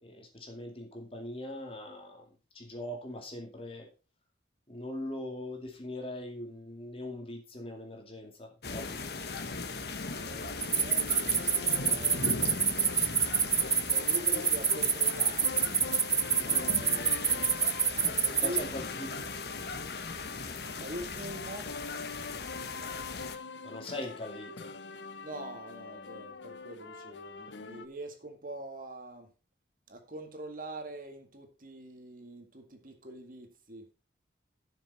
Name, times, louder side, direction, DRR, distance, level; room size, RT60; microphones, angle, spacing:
voice 1, 0.0-3.9 4.7-9.2 18.4-19.4 23.6-24.7, left 1 dB, 30° left, 2.3 m, -41 dB
sound 1, 8.6-23.4, left 4 dB, 60° left, 1.1 m, -38 dB
sound 2, 10.0-27.9, left 3 dB, 80° left, 0.9 m, -45 dB
voice 2, 10.2-12.3 13.9-15.8 16.3-17.7 17.9-18.7 20.8-21.7 25.2-29.3 29.9-33.9, right 1 dB, 50° right, 1.9 m, -44 dB
sound 3, 10.6-18.6, right 6 dB, 15° right, 0.6 m, -26 dB
12.0 x 6.3 x 4.3 m
head